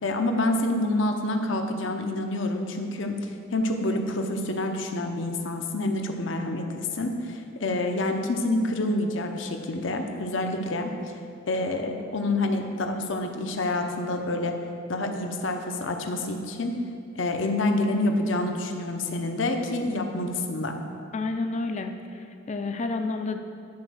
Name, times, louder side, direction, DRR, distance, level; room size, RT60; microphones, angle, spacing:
voice 1, 0.0-3.2 3.5-10.9 11.5-14.5 14.9-16.8 17.2-20.8, left 2 dB, 65° left, 4 dB, 0.8 m, -27 dB
voice 2, 21.1-23.4, left 3 dB, 35° left, 7 dB, 0.5 m, -30 dB
10.5 x 4.4 x 6.2 m, 2.3 s
head